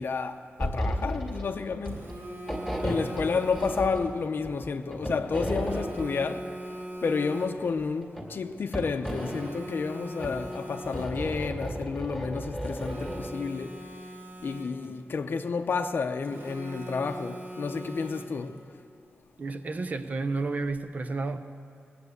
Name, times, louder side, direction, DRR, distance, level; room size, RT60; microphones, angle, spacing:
voice 1, 0.0-2.1 2.8-6.5 7.0-13.8 14.4-18.6, left 5 dB, 55° left, 0.6 m, -31 dB
sound 1, 0.6-1.4 1.7-2.2 2.5-4.1 4.4-6.0 7.8-8.2 8.7-9.5 10.2-13.3, equal, 5° right, 2.3 m, -33 dB
Telephone, 1.8-4.2 5.5-7.8 9.0-11.4 12.6-15.0 16.2-18.6, right 1 dB, 55° right, 1.7 m, -41 dB
voice 2, 19.4-21.4, right 3 dB, 35° right, 0.6 m, -31 dB
19.0 x 8.2 x 8.0 m
wide cardioid pair, 165°, 4 cm